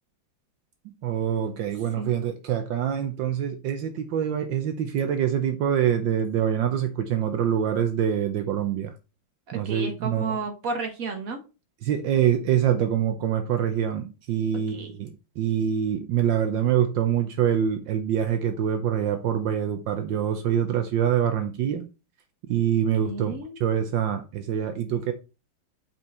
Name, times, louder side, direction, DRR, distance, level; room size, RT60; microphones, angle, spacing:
voice 1, 1.0-8.9 9.5-10.4 11.8-21.9 22.5-23.3 23.6-25.1, right 9 dB, 75° right, 1.4 m, -25 dB
voice 2, 9.5-11.4 14.7-15.0 23.0-23.6, right 4 dB, 50° right, 1.5 m, -32 dB
5.9 x 4.6 x 4.2 m
omnidirectional pair, 2.1 m